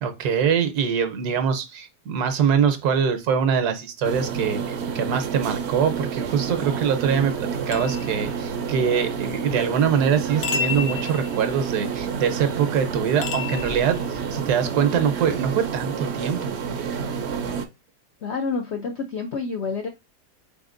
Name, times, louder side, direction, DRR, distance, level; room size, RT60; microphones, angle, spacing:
voice 1, 0.0-16.5, right 7 dB, 75° right, 1.3 m, -23 dB
sound 1, 4.0-17.7, right 6 dB, 60° right, 0.7 m, -29 dB
sound 2, 7.7-9.0 10.4-11.9 13.2-14.5, left 6 dB, 90° left, 1.3 m, -32 dB
voice 2, 18.2-19.9, left 4 dB, 75° left, 0.6 m, -28 dB
4.1 x 3.6 x 2.5 m
omnidirectional pair, 1.7 m